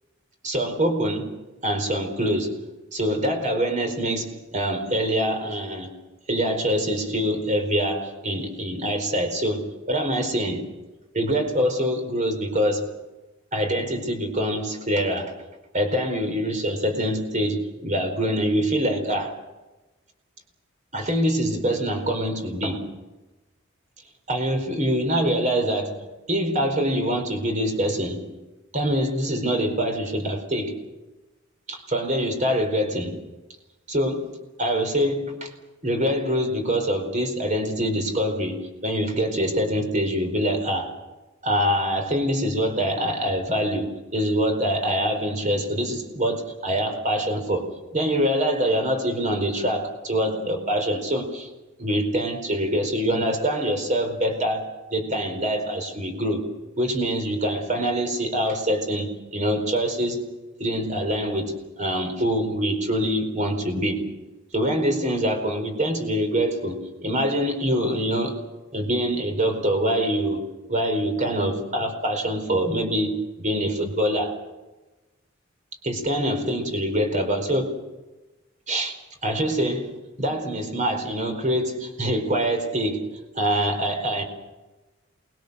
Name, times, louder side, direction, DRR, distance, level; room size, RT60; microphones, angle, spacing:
voice 1, 0.4-1.3 1.6-2.6 2.9-5.9 6.3-10.6 11.1-12.9 13.5-15.3 15.7-19.3 20.9-22.9 24.3-26.0 26.3-28.2 28.7-30.8 31.7-33.2 33.9-34.3 34.6-35.5 35.8-40.9 41.4-47.7 47.9-51.5 51.8-56.4 56.8-60.3 60.6-64.0 64.5-68.4 68.7-74.3 75.8-77.7 78.7-79.0 79.2-83.1 83.3-84.2, equal, 35° right, 5 dB, 4.5 m, -25 dB
28.5 x 21.5 x 6.8 m, 1.1 s
head